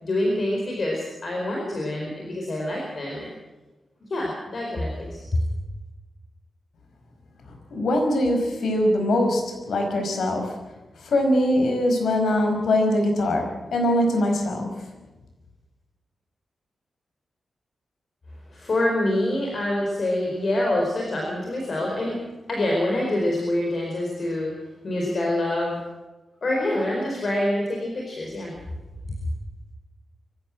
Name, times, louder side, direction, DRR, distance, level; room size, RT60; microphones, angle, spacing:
voice 1, 0.0-3.3 4.1-5.5 18.5-24.5 24.8-25.8 26.4-28.5, left 1 dB, 45° left, -1 dB, 4.7 m, -26 dB
voice 2, 7.5-10.6 11.0-14.9, left 1 dB, 85° left, 3 dB, 5.5 m, -22 dB
25.0 x 15.5 x 7.6 m, 1.1 s
wide cardioid pair, 150°, 0 cm